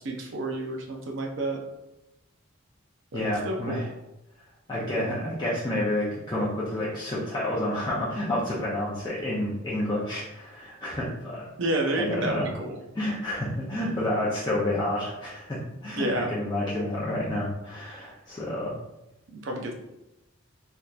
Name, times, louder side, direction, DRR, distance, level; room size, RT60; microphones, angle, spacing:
voice 1, 0.0-1.6 3.1-3.8 11.6-12.8 15.9-16.3 19.3-19.7, right 1 dB, 65° right, 0 dB, 0.6 m, -30 dB
voice 2, 3.1-3.9 4.7-11.5 12.0-12.5 12.9-18.7, left 1 dB, 20° left, -8 dB, 0.6 m, -29 dB
3.4 x 2.8 x 2.4 m, 0.93 s
head